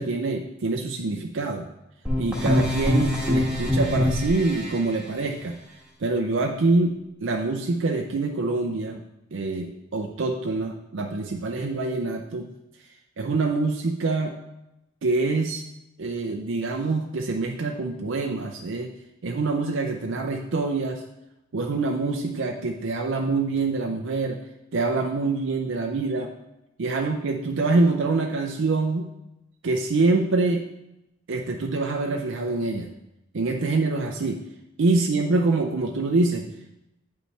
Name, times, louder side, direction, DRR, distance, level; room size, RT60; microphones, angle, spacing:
voice 1, 0.0-1.7 2.2-5.5 6.0-6.9 7.2-9.0 9.3-12.5 13.2-14.3 15.0-15.6 16.0-18.9 19.2-21.0 21.5-24.4 24.7-26.3 26.8-29.1 29.6-30.6 31.3-32.9 33.3-34.4 34.8-36.5, right 3 dB, 65° right, 2 dB, 0.5 m, -25 dB
sound 1, 2.1-4.8, left 1 dB, 5° right, 1.4 m, -23 dB
8.9 x 5.3 x 3.3 m, 0.90 s
head